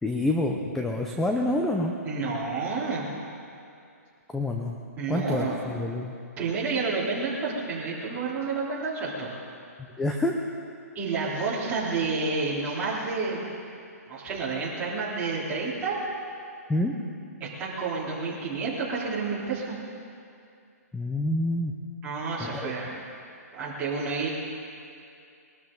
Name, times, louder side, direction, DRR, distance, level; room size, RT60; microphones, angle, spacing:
voice 1, 0.0-1.9 4.3-4.8 5.1-6.1 10.0-10.3 16.7-16.9 20.9-21.7 22.4-22.7, left 1 dB, 5° left, 1 dB, 0.6 m, -27 dB
voice 2, 2.0-3.1 5.0-5.6 6.4-9.3 11.0-13.4 14.1-16.0 17.4-19.8 22.0-23.1 23.5-24.3, right 4 dB, 15° right, -7 dB, 3.6 m, -30 dB
21.5 x 13.0 x 3.9 m, 2.5 s
hypercardioid pair, 155°, 9 cm